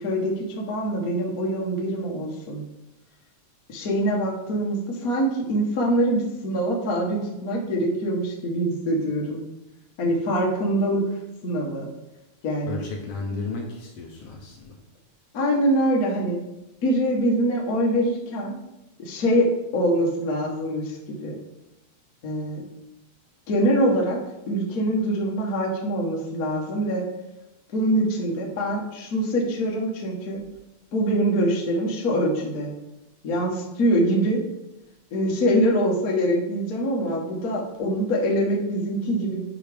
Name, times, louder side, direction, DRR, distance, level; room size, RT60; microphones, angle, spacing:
voice 1, 0.0-2.6 3.7-9.4 10.0-11.0 11.4-11.9 12.4-12.8 15.3-16.4 16.8-18.6 19.0-21.4 22.2-22.6 23.5-24.2 24.5-27.1 27.7-30.4 30.9-32.7 33.2-34.4 35.1-39.4, right 1 dB, 50° left, -1 dB, 1.0 m, -24 dB
voice 2, 12.7-14.7, left 3 dB, 70° left, 0 dB, 1.7 m, -33 dB
8.1 x 3.3 x 5.0 m, 0.94 s
omnidirectional pair, 3.3 m